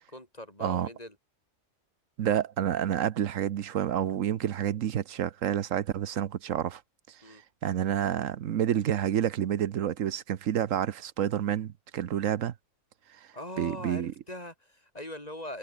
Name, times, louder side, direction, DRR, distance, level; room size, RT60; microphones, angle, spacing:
voice 1, 0.1-1.2 7.2-7.4 13.3-15.6, left 1 dB, 30° left, 5.4 m, -41 dB
voice 2, 2.2-6.8 7.1-7.4 7.6-12.5 13.6-14.1, right 10 dB, 80° right, 1.2 m, -29 dB
omnidirectional pair, 1.3 m